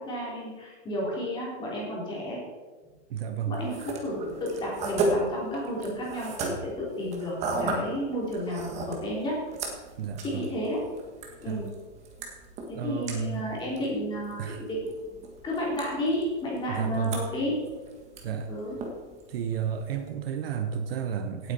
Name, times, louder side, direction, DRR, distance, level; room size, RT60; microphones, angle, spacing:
voice 1, 0.0-2.4 3.5-9.4 10.2-10.8 11.4-11.7 12.7-17.6 18.5-18.8, equal, 15° left, -4 dB, 3.3 m, -32 dB
voice 2, 3.1-3.6 10.0-10.5 11.5-11.6 12.7-13.5 14.4-14.6 16.7-17.2 18.2-18.5 19.3-21.5, right 7 dB, 55° right, 7 dB, 1.1 m, -31 dB
sound 1, 3.5-20.1, right 2 dB, 20° right, 1.5 m, -36 dB
17.5 x 8.6 x 4.4 m, 1.4 s
supercardioid pair, 175°, 35 cm